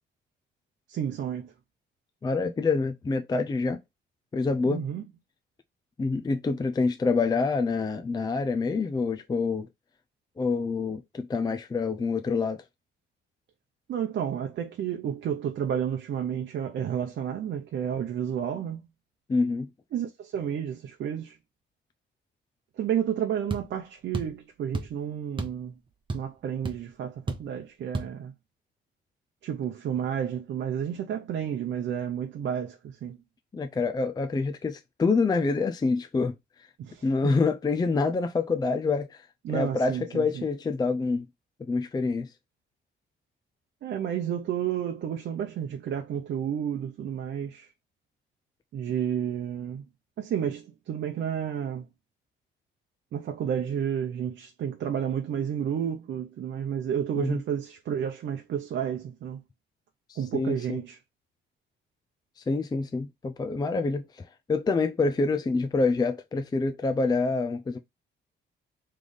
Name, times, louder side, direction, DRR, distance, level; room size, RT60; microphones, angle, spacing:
voice 1, 0.9-1.5 4.6-5.0 13.9-18.8 19.9-21.4 22.8-25.8 26.1-28.3 29.4-33.2 36.8-37.4 39.4-40.4 43.8-47.7 48.7-49.9 50.2-51.9 53.1-59.4 60.2-61.0, right 9 dB, 65° right, 0.7 m, -31 dB
voice 2, 2.2-3.8 4.3-4.8 6.0-9.7 10.4-12.6 19.3-19.7 33.5-36.3 37.0-39.3 39.5-41.3 41.7-42.3 57.2-57.4 60.1-60.8 62.4-67.8, left 4 dB, 20° left, 0.4 m, -26 dB
sound 1, 23.5-23.7 24.1-24.4 24.7-25.0 25.4-25.6 25.9-26.4 26.7-26.8 27.3-27.5 27.9-28.1, right 3 dB, 25° right, 1.0 m, -32 dB
3.5 x 3.3 x 3.9 m
cardioid pair, 90°, 20 cm